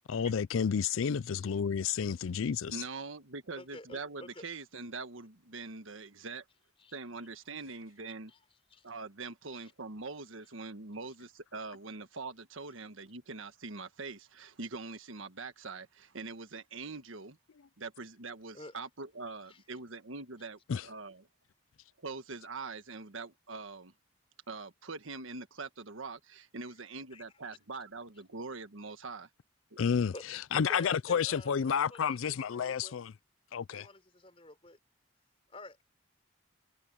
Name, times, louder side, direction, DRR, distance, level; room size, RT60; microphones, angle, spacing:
voice 1, 0.1-2.8 20.7-20.9 29.8-33.1 33.5-33.9, left 7 dB, 90° left, 0.4 m, -31 dB
voice 2, 2.7-6.4 6.9-8.3 8.8-17.4 17.8-21.3 22.0-23.9 24.5-29.3, right 3 dB, 85° right, 1.5 m, -43 dB
voice 3, 3.6-4.4 6.8-7.0 8.3-8.4 8.7-8.9 9.5-9.7 18.5-18.8 19.5-19.6 27.1-27.2 30.1-30.2 30.5-33.0 33.7-34.8 35.5-35.8, left 2 dB, 30° left, 4.2 m, -50 dB
head